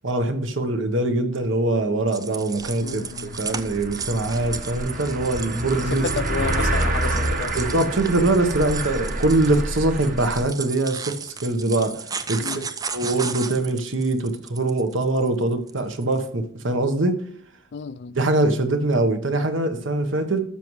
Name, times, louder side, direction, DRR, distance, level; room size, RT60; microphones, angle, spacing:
voice 1, 0.0-6.0 7.5-12.0 12.3-12.5 12.9-17.2 18.1-20.4, right 2 dB, 75° right, 1.1 m, -23 dB
sound 1, 2.1-16.2, right 6 dB, 20° right, 0.4 m, -35 dB
sound 2, 2.6-2.7 2.9-10.4, right 1 dB, 45° right, 1.1 m, -28 dB
voice 2, 2.8-3.4 5.9-7.5 12.4-12.7 17.7-18.2, left 5 dB, 60° left, 0.4 m, -31 dB
13.0 x 6.1 x 3.2 m
head